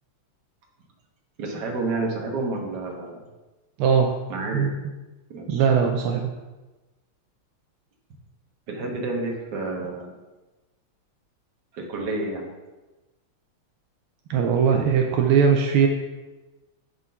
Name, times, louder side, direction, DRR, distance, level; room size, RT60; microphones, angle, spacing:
voice 1, 1.4-3.2 4.3-4.7 5.3-5.7 8.7-10.2 11.7-12.5, right 3 dB, 55° right, 0 dB, 1.7 m, -29 dB
voice 2, 3.8-4.1 4.5-4.7 5.5-6.3 14.3-15.9, right 6 dB, 80° right, 3 dB, 1.5 m, -20 dB
8.0 x 3.8 x 5.5 m, 1.1 s
omnidirectional pair, 2.4 m